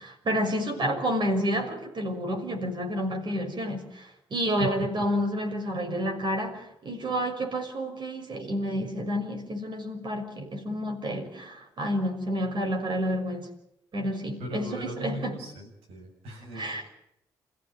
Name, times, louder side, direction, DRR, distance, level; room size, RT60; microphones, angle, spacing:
voice 1, 0.0-13.5 13.9-15.4 16.5-16.9, equal, 50° right, 6.1 m, -30 dB
voice 2, 14.4-16.7, right 1 dB, 75° right, 7.1 m, -37 dB
28.0 x 15.5 x 9.3 m
hypercardioid pair, 45°, 10 cm